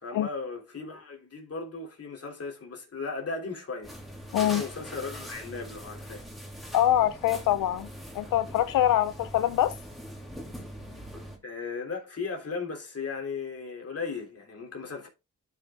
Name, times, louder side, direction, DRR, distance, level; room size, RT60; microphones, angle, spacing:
voice 1, 0.0-3.9 4.4-6.3 11.4-15.1, left 4 dB, 45° left, 3.1 m, -36 dB
sound 1, 3.8-11.4, equal, ahead, 2.8 m, -42 dB
voice 2, 6.7-7.9 8.1-9.7, left 12 dB, 85° left, 0.5 m, -24 dB
12.0 x 5.5 x 2.4 m
cardioid pair, 70°, 32 cm